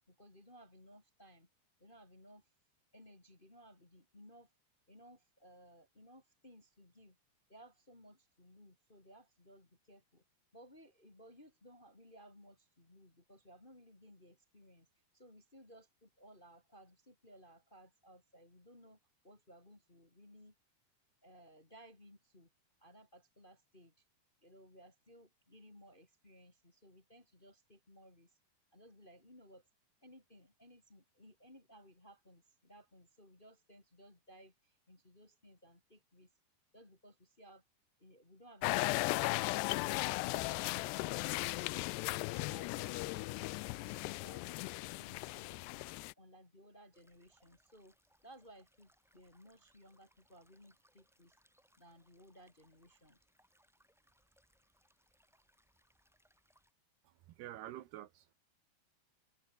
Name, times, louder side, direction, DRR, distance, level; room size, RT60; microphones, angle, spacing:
voice 1, 0.1-1.5 1.8-2.5 2.9-4.5 4.9-7.2 7.5-10.2 10.5-14.9 15.1-19.0 19.2-20.5 21.2-22.5 22.8-24.0 24.4-28.4 28.7-29.7 30.0-36.3 36.7-37.6 38.0-41.6 41.9-43.4 43.7-45.8 46.2-48.0 48.2-51.3 51.8-53.2, equal, 15° left, 2.1 m, -60 dB
sound 1, 38.6-46.1, left 24 dB, 85° left, 2.5 m, -37 dB
sound 2, 46.9-56.7, equal, ahead, 4.1 m, -73 dB
voice 2, 57.4-58.3, right 13 dB, 75° right, 2.9 m, -47 dB
open air
omnidirectional pair, 5.0 m